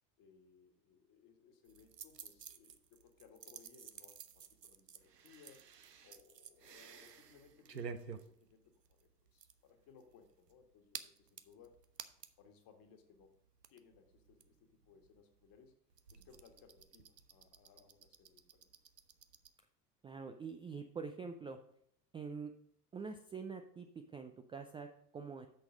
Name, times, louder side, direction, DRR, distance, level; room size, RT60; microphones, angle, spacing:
voice 1, 0.2-5.6 6.0-11.8 12.4-13.3 13.7-15.7 16.1-18.7, left 6 dB, 45° left, 5 dB, 1.8 m, -64 dB
sound 1, 1.6-12.5 12.8-12.9 13.1-19.5, right 6 dB, 90° right, 0.6 m, -53 dB
voice 2, 20.0-21.6 22.1-22.5 22.9-25.5, right 5 dB, 10° right, 6 dB, 0.3 m, -45 dB
8.0 x 6.4 x 5.1 m, 0.72 s
figure-of-eight pair, 70°, 48 cm